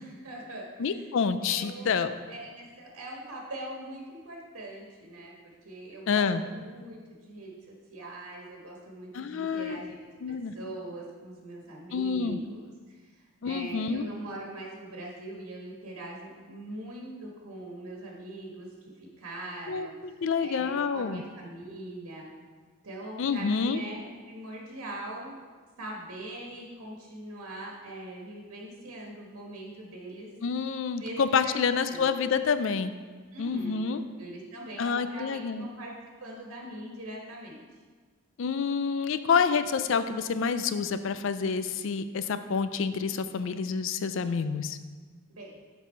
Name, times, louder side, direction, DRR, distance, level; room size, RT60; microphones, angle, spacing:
voice 1, 0.0-1.1 1.4-1.9 2.3-9.9 10.5-22.3 22.8-25.4 25.8-30.3 31.0-31.6 31.9-32.1 33.3-35.9 36.2-37.6 45.3-45.5, right 1 dB, 90° right, -2 dB, 1.4 m, -42 dB
voice 2, 0.8-2.1 6.1-6.4 9.1-9.8 10.2-10.5 11.9-12.4 13.4-14.1 19.7-21.2 23.2-23.8 30.4-32.9 33.4-34.0 34.8-35.7 38.4-44.8, left 5 dB, 60° left, 12 dB, 0.4 m, -28 dB
7.4 x 5.5 x 4.4 m, 1.5 s
head